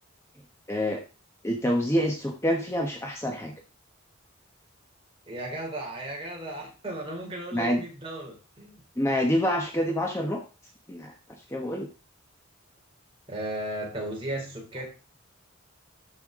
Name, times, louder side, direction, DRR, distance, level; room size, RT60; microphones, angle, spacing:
voice 1, 0.7-1.0 1.4-3.5 7.5-7.8 9.0-10.4 10.9-11.1 11.5-11.9, equal, 15° left, 1 dB, 1.0 m, -26 dB
voice 2, 5.3-8.8 13.3-14.9, right 1 dB, 25° right, -1 dB, 3.0 m, -35 dB
13.0 x 5.7 x 3.7 m, 0.32 s
head